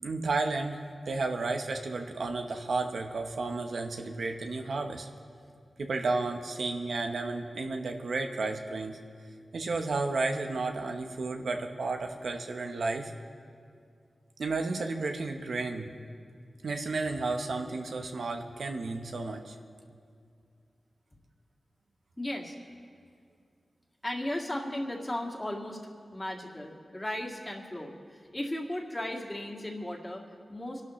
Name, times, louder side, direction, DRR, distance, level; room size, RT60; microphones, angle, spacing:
voice 1, 0.0-0.8 1.1-5.1 5.8-9.0 9.5-13.1 14.4-15.9 16.6-19.6, right 3 dB, 80° right, 4 dB, 1.0 m, -32 dB
voice 2, 22.2-22.5 24.0-25.8 26.1-30.2 30.5-30.8, left 1 dB, 25° left, 0 dB, 2.2 m, -36 dB
26.0 x 12.0 x 3.2 m, 2.2 s
cardioid pair, 60°, 0 cm